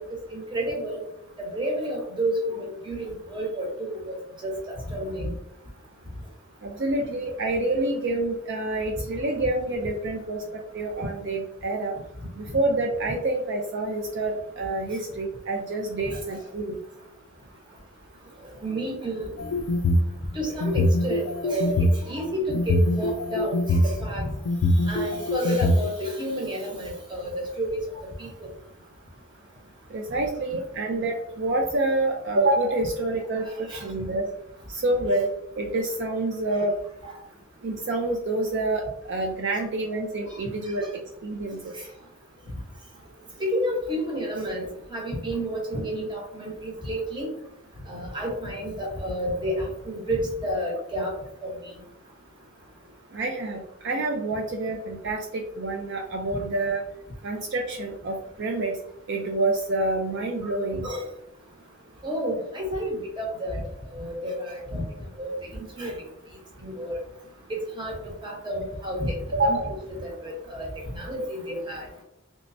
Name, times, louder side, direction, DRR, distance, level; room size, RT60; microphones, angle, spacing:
voice 1, 0.3-1.0 1.4-4.2 4.4-4.5 4.9-5.3 18.6-19.6 20.3-24.3 24.9-27.8 28.2-28.3 33.7-33.8 37.0-37.1 43.4-44.6 44.9-47.3 47.9-51.1 51.4-51.5 60.4-60.5 60.8-61.0 62.0-63.6 63.9-64.8 65.2-65.3 65.7-65.9 66.6-67.0 67.8-67.9 68.2-69.1 69.4-69.7 70.2-70.7 70.9-71.9, equal, 25° right, -1 dB, 1.0 m, -30 dB
voice 2, 6.6-10.4 10.7-11.9 12.4-16.8 29.9-34.3 34.7-35.3 35.6-36.7 37.6-40.9 41.2-41.7 53.1-55.2 55.6-56.8 57.2-58.8 59.1-60.9 69.3-69.7, right 2 dB, 55° right, 1 dB, 0.4 m, -27 dB
sound 1, 19.4-20.1 20.6-22.0 22.5-23.8 24.5-25.8, left 1 dB, 80° left, 0.3 m, -22 dB
3.2 x 3.2 x 2.6 m, 0.81 s
head